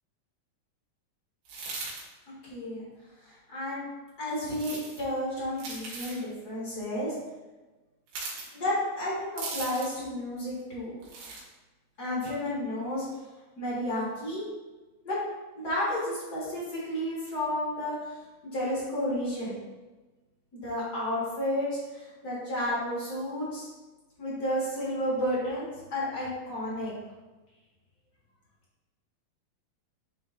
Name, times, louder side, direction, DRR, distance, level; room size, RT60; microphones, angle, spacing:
sound 1, 1.4-2.0 4.5-5.0 5.6-6.2 8.1-8.5 9.4-10.0 11.0-11.4, right 3 dB, 80° right, 3.2 m, -38 dB
voice 1, 2.5-2.8 3.5-3.8 4.2-7.1 8.5-10.9 12.0-13.0 13.6-14.4 15.0-15.2 15.5-18.0 18.5-19.5 20.5-23.7 24.2-26.9, left 1 dB, 35° left, -7 dB, 1.7 m, -31 dB
10.0 x 3.6 x 2.7 m, 1.2 s
omnidirectional pair, 4.3 m